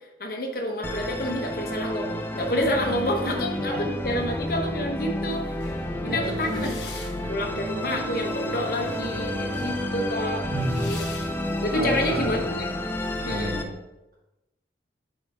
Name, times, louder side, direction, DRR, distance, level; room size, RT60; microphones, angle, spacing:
voice 1, 0.2-5.7 6.0-6.7 7.3-10.5 10.8-11.0 11.6-12.4 13.3-13.5, left 1 dB, 50° left, 2 dB, 1.0 m, -28 dB
Musical instrument, 0.8-13.6, left 1 dB, 10° left, 0.4 m, -30 dB
sound 1, 5.3-11.7, right 1 dB, 85° left, 1.2 m, -40 dB
voice 2, 6.0-6.8 10.5-10.9 11.7-12.3 13.2-13.7, right 1 dB, 55° right, -11 dB, 1.9 m, -30 dB
7.9 x 3.4 x 4.2 m, 0.98 s
head